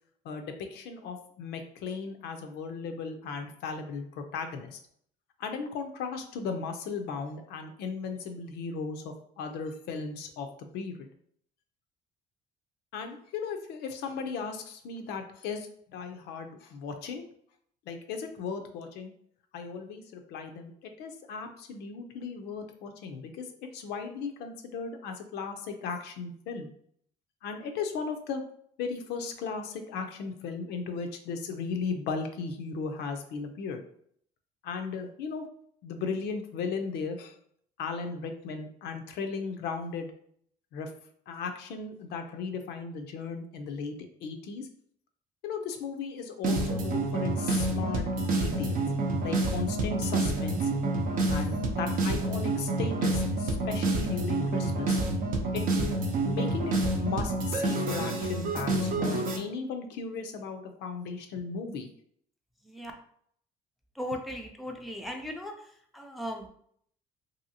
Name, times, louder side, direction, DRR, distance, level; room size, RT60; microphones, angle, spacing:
voice 1, 0.2-4.8 5.4-11.1 12.9-17.2 17.9-19.1 19.5-23.5 23.7-26.7 27.4-28.4 28.8-33.8 34.6-35.5 35.8-37.3 37.8-40.1 40.7-40.9 41.3-44.0 44.2-44.7 45.4-48.8 49.2-50.7 51.3-55.0 55.5-61.9, left 5 dB, 80° left, 5 dB, 0.5 m, -36 dB
sound 1, 46.4-59.4, right 2 dB, 55° right, 0.6 m, -28 dB
voice 2, 64.0-65.5 65.9-66.5, equal, ahead, 1 dB, 0.4 m, -37 dB
2.8 x 2.7 x 2.7 m, 0.64 s
cardioid pair, 110°, 17 cm